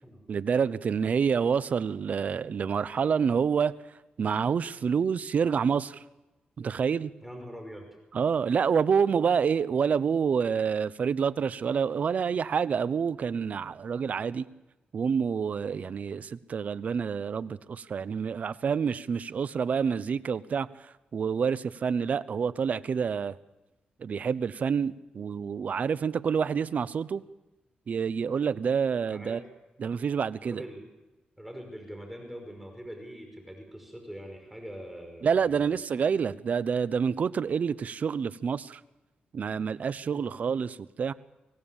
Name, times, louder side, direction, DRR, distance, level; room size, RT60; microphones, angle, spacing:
voice 1, 0.3-3.8 4.2-6.0 6.6-7.1 8.1-14.5 14.9-20.7 21.1-23.3 24.0-27.2 27.9-29.4 29.8-30.6 35.2-38.8 39.3-41.1, right 6 dB, 60° right, 16 dB, 0.9 m, -27 dB
voice 2, 7.2-7.9 29.1-29.4 30.5-30.8 31.4-35.8 40.1-40.3, equal, 5° right, 4 dB, 5.6 m, -43 dB
25.0 x 17.5 x 7.3 m, 1.1 s
cardioid pair, 85°, 3 cm